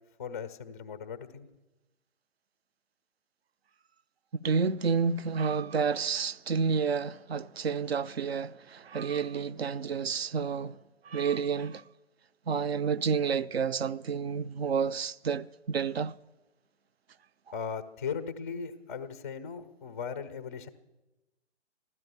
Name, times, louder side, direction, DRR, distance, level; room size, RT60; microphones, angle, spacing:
voice 1, 0.2-1.5 17.5-20.7, left 6 dB, 15° left, 0.4 m, -38 dB
voice 2, 4.4-10.8 11.0-11.8 12.5-16.1, right 6 dB, 60° right, 0.6 m, -30 dB
15.5 x 12.0 x 6.8 m
figure-of-eight pair, 125°, 35 cm